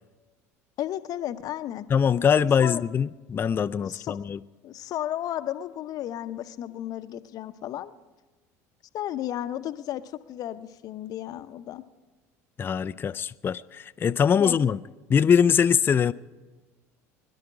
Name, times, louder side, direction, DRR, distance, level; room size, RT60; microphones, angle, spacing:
voice 1, 0.8-1.9 2.6-2.8 3.8-4.2 4.6-7.9 8.9-10.0 10.3-11.8 14.4-14.6, left 12 dB, 50° left, 0.7 m, -33 dB
voice 2, 1.9-4.4 12.6-14.8 15.1-16.1, left 7 dB, 25° left, 0.4 m, -22 dB
22.0 x 11.5 x 4.9 m
hypercardioid pair, 70°, 8 cm